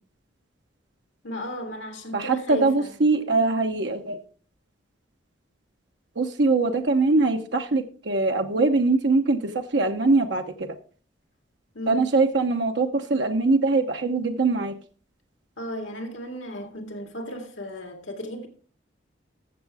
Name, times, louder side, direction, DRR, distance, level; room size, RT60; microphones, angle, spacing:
voice 1, 1.2-2.9 11.7-12.0 15.6-18.5, equal, 80° left, 2.1 m, -35 dB
voice 2, 2.1-4.2 6.2-10.8 11.9-14.7, right 3 dB, 60° right, 0.8 m, -22 dB
14.0 x 7.2 x 3.4 m
head